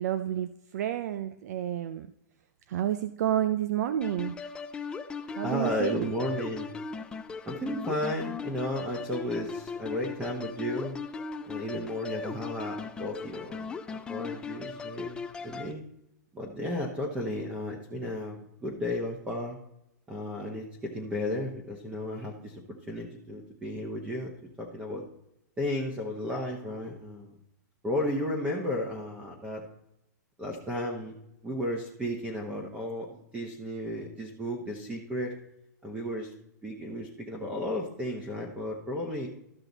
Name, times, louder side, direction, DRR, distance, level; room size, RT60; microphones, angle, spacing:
voice 1, 0.0-2.1 2.7-4.4 5.4-6.1, right 11 dB, 60° right, 11 dB, 0.5 m, -30 dB
sound 1, 4.0-15.7, left 5 dB, 10° left, 0.3 m, -38 dB
voice 2, 5.3-6.7 7.5-11.0 11.5-15.8 16.3-19.6 20.1-24.3 24.6-25.0 25.6-27.3 27.8-29.6 30.4-31.1 31.4-35.4 35.8-36.3 36.6-39.3, left 1 dB, 10° right, 1 dB, 1.0 m, -34 dB
13.0 x 5.8 x 4.0 m, 0.82 s
hypercardioid pair, 155°, 10 cm